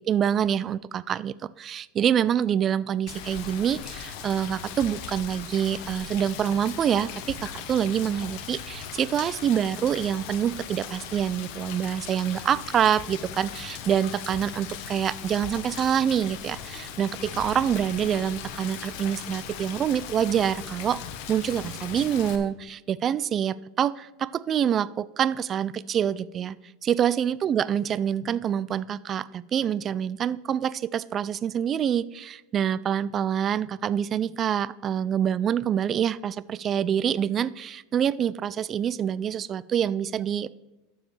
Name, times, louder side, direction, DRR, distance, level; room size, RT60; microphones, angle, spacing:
voice 1, 0.0-21.0 21.3-26.6 26.8-40.5, right 9 dB, 35° right, 0.3 m, -26 dB
Rain, 3.1-22.4, left 8 dB, 60° left, 0.9 m, -39 dB
12.0 x 7.0 x 3.2 m
hypercardioid pair, 90°, 0 cm